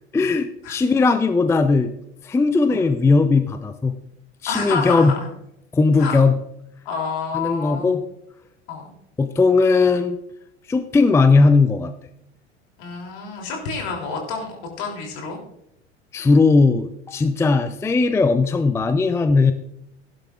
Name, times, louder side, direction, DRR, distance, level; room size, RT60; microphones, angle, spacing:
voice 1, 0.1-1.9 2.2-3.9 4.4-5.1 5.7-6.3 7.3-8.0 9.2-10.2 10.7-11.9 16.1-19.5, left 3 dB, 10° left, 10 dB, 0.5 m, -18 dB
voice 2, 4.5-5.3 6.0-6.2 6.8-8.0 8.7-8.9 12.8-15.4, left 5 dB, 55° left, 1 dB, 3.3 m, -29 dB
15.5 x 11.5 x 2.5 m, 0.79 s
figure-of-eight pair, 75°, 35 cm